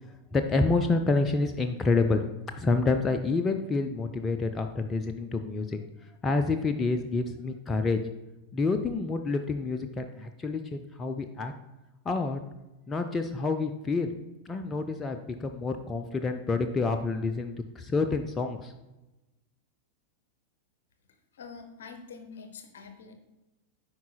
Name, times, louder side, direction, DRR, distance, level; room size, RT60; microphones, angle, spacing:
voice 1, 0.3-2.2 2.5-5.8 6.2-8.0 8.5-11.5 12.1-12.4 12.9-14.1 14.5-18.7, left 3 dB, 20° left, 7 dB, 0.3 m, -28 dB
voice 2, 21.3-23.1, left 5 dB, 60° left, 6 dB, 0.7 m, -45 dB
9.3 x 4.6 x 2.2 m, 1.0 s
figure-of-eight pair, 90°, 0 cm